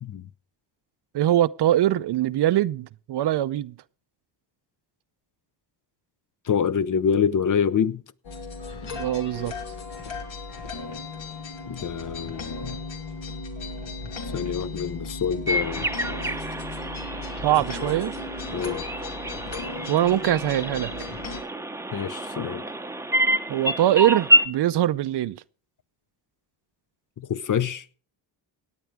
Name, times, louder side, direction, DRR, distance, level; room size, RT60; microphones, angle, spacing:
voice 1, 1.1-3.7 8.9-9.5 17.4-18.1 19.9-21.1 23.5-25.4, right 12 dB, 60° right, 0.6 m, -22 dB
voice 2, 6.5-8.0 11.7-12.8 14.3-16.0 18.5-18.8 21.9-22.7 27.2-27.8, left 7 dB, 40° left, 0.7 m, -26 dB
sound 1, 8.2-21.4, left 3 dB, 75° left, 2.5 m, -36 dB
sound 2, 15.5-24.5, equal, 5° right, 0.7 m, -27 dB
17.5 x 9.1 x 3.5 m
cardioid pair, 90°, 46 cm